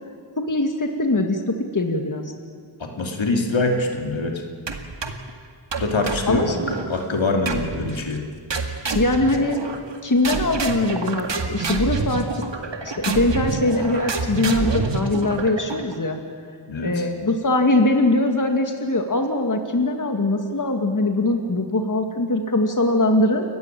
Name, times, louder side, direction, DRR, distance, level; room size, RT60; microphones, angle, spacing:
voice 1, 0.4-2.3 6.3-6.6 8.9-9.6 10.0-12.3 12.8-16.2 16.8-23.4, left 2 dB, 45° left, 4 dB, 2.0 m, -21 dB
voice 2, 2.8-4.4 5.8-8.3 16.7-17.0, left 2 dB, 80° left, 2 dB, 2.9 m, -24 dB
sound 1, 4.7-5.3 5.7-6.9 7.5-8.0 8.5-10.0 10.2-15.9, right 4 dB, 70° right, 2.0 m, -27 dB
29.5 x 15.0 x 9.2 m, 2.1 s
wide cardioid pair, 80°, 45 cm